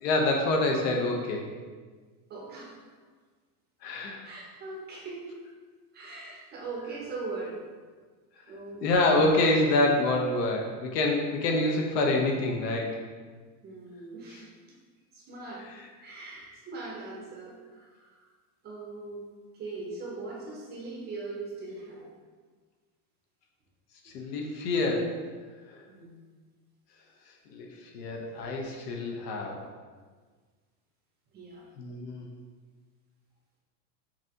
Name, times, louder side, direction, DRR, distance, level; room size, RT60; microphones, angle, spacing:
voice 1, 0.0-1.4 3.8-4.2 8.8-13.0 24.0-25.2 25.7-25.8 27.5-27.7 27.9-29.6 31.8-32.3, left 2 dB, 85° left, 1 dB, 1.0 m, -26 dB
voice 2, 2.3-2.8 4.2-5.4 5.9-7.6 8.5-9.2 13.6-14.5 15.1-15.7 16.0-18.3 18.6-19.2 19.5-22.1 25.9-26.2 31.3-31.6, right 3 dB, 20° right, -3 dB, 0.5 m, -40 dB
6.0 x 2.7 x 2.8 m, 1.5 s
supercardioid pair, 155°, 48 cm